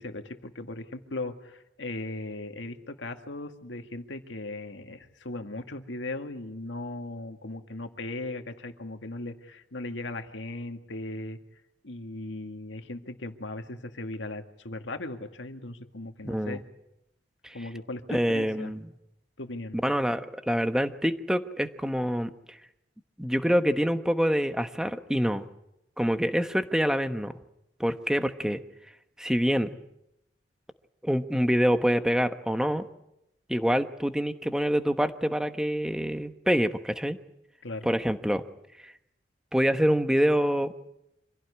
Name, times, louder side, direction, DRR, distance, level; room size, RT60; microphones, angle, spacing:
voice 1, 0.0-11.4 11.8-16.6 17.5-18.7 19.4-19.8 37.6-37.9, left 2 dB, 80° left, 6 dB, 2.0 m, -38 dB
voice 2, 16.2-16.6 17.4-17.6 18.1-18.8 19.8-22.3 23.2-25.4 26.0-27.3 27.8-28.6 29.2-29.8 31.0-32.9 33.5-37.2 37.8-38.4 38.8-38.9 39.5-40.7, equal, 5° right, 9 dB, 1.1 m, -26 dB
26.0 x 16.5 x 9.9 m, 0.85 s
head